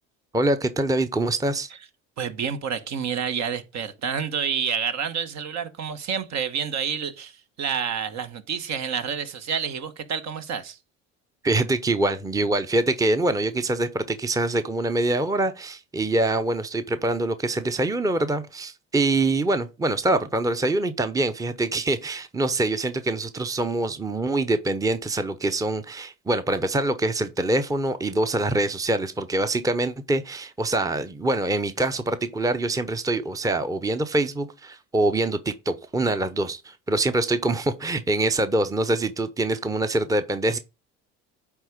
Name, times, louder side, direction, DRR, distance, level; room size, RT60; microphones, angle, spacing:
voice 1, 0.3-1.7 11.4-40.6, right 2 dB, 10° right, 0.8 m, -24 dB
voice 2, 2.2-10.8, right 7 dB, 55° right, 1.3 m, -29 dB
9.1 x 3.7 x 5.1 m
supercardioid pair, 80°, 34 cm